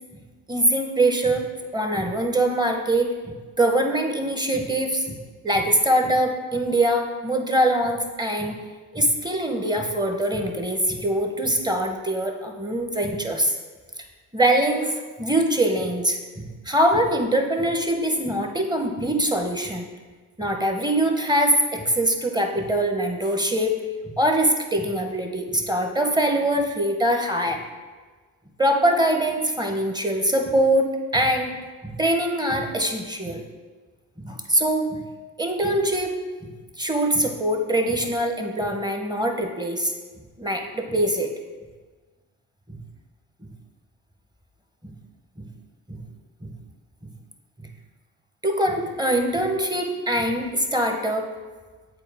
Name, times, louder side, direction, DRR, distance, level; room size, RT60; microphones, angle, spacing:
voice 1, 0.5-1.5 1.7-3.1 3.6-5.2 5.4-8.6 8.9-13.6 14.3-19.9 20.4-23.7 24.0-27.6 28.6-31.6 31.8-33.4 34.2-35.0 35.4-36.1 36.4-36.5 36.8-39.9 40.4-41.3 42.7-42.8 44.8-44.9 45.9-46.0 46.4-46.5 48.4-51.3, right 1 dB, 10° right, 4 dB, 1.0 m, -23 dB
8.1 x 4.1 x 3.6 m, 1.4 s
supercardioid pair, 60°, 40 cm